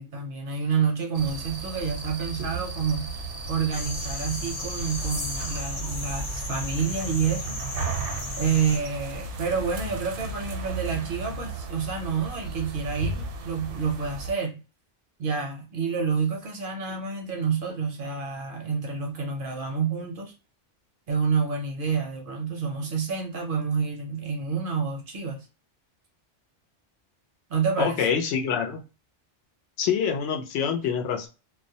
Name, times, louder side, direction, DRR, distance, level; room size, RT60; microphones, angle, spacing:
voice 1, 0.0-3.1 3.5-7.6 8.4-14.6 15.2-20.3 21.1-25.5 27.5-28.0, right 6 dB, 60° right, 2 dB, 0.6 m, -28 dB
sound 1, 1.1-14.3, right 3 dB, 85° right, 0.9 m, -35 dB
sound 2, 3.7-8.8, left 2 dB, 50° left, 0.3 m, -35 dB
voice 2, 27.8-28.8 29.8-31.3, left 7 dB, 80° left, 3 dB, 0.9 m, -26 dB
2.3 x 2.0 x 2.6 m, 0.31 s
omnidirectional pair, 1.2 m